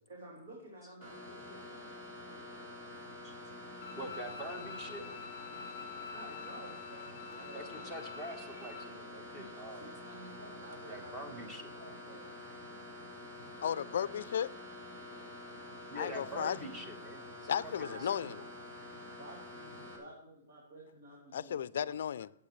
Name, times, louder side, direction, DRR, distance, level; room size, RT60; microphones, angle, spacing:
voice 1, 0.1-1.9 2.3-2.6 3.4-3.5 5.6-7.0 7.3-7.8 9.4-9.5 9.8-11.1 11.7-12.3 17.5-18.4 19.2-21.9, right 1 dB, 65° right, 3.3 m, -52 dB
sound 1, 1.0-20.0, left 1 dB, 30° right, 4.0 m, -48 dB
Bowed string instrument, 3.8-8.8, left 6 dB, 30° left, 0.9 m, -47 dB
voice 2, 3.9-5.0 7.5-9.9 10.8-11.7 15.9-18.3, right 1 dB, 10° right, 1.3 m, -45 dB
voice 3, 13.6-14.5 16.0-16.6 17.5-18.4 21.3-22.3, left 9 dB, 65° left, 0.4 m, -34 dB
22.0 x 8.3 x 3.2 m
hypercardioid pair, 175°, 0 cm